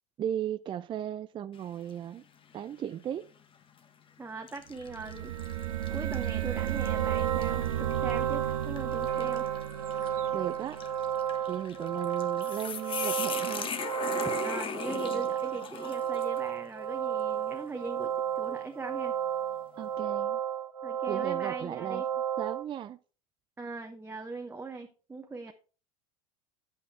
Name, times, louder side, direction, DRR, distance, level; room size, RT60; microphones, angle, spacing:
voice 1, 0.2-2.2 2.5-3.3 10.3-10.8 11.5-13.7 19.8-20.4 21.1-22.0 22.4-23.0, right 10 dB, 25° right, 0.4 m, -36 dB
sound 1, 1.5-2.0 2.5-2.7 3.6-3.9 4.5-16.5, left 6 dB, 30° left, 1.3 m, -40 dB
voice 2, 4.2-5.3 5.9-9.5 14.4-19.2 20.8-22.1 23.6-25.5, right 3 dB, 10° right, 1.1 m, -41 dB
sound 2, 4.8-11.5, right 12 dB, 70° right, 1.2 m, -34 dB
sound 3, 6.6-22.6, right 9 dB, 90° right, 0.7 m, -33 dB
8.4 x 8.4 x 3.2 m
hypercardioid pair, 80°, 18 cm